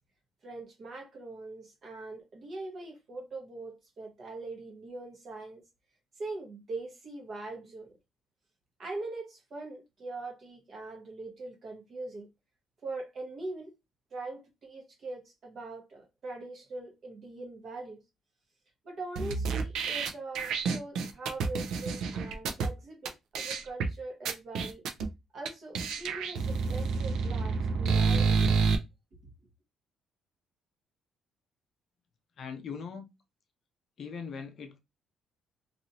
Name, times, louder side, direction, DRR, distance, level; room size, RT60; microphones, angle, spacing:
voice 1, 0.4-5.6 6.2-7.9 8.8-12.3 12.8-13.7 14.1-18.0 18.8-24.8 25.3-28.6, right 2 dB, 35° right, 1.2 m, -42 dB
sound 1, 19.2-22.7 23.1-23.2 23.3-23.9 24.3-25.1 25.5-25.6 25.7-28.8, right 5 dB, 80° right, 0.6 m, -29 dB
voice 2, 32.4-33.1 34.0-34.8, left 6 dB, 45° left, 0.5 m, -40 dB
3.1 x 2.6 x 2.7 m
cardioid pair, 160°, 0 cm